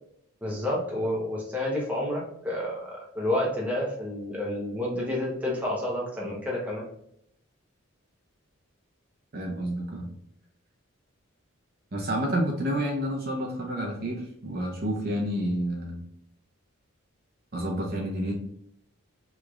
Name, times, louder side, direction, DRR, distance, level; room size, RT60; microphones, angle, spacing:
voice 1, 0.4-6.8, left 1 dB, 5° right, -4 dB, 0.8 m, -29 dB
voice 2, 9.3-10.1 11.9-16.0 17.5-18.3, equal, 45° right, -1 dB, 0.8 m, -29 dB
3.6 x 3.1 x 2.3 m, 0.73 s
head